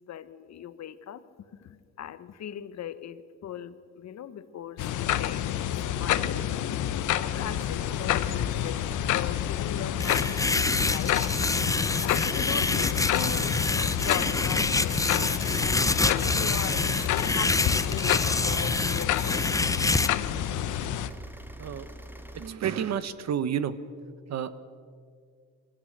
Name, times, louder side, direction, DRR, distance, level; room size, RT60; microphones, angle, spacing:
voice 1, 0.1-1.2 1.6-5.6 5.9-6.6 6.8-11.7 12.0-15.0 15.6-19.6, left 10 dB, 60° left, 13 dB, 1.2 m, -39 dB
sound 1, 4.8-21.1, left 11 dB, 80° left, 0.9 m, -29 dB
sound 2, 7.3-22.5, right 1 dB, 5° right, 1.6 m, -44 dB
sound 3, 10.0-20.1, left 3 dB, 10° left, 0.6 m, -27 dB
voice 2, 22.3-23.8 24.3-24.6, right 8 dB, 60° right, 14 dB, 1.2 m, -30 dB
23.0 x 16.5 x 6.7 m, 2.1 s
cardioid pair, 90°, 30 cm